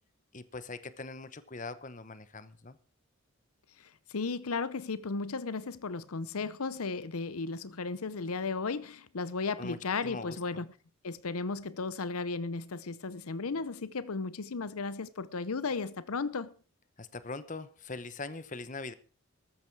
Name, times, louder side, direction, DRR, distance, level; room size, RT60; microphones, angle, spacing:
voice 1, 0.3-2.8 9.6-9.8 10.0-10.4 17.0-18.9, left 3 dB, 35° left, 1.0 m, -41 dB
voice 2, 3.8-10.7 11.0-16.5, left 4 dB, 85° left, 0.8 m, -35 dB
14.0 x 13.0 x 4.7 m
head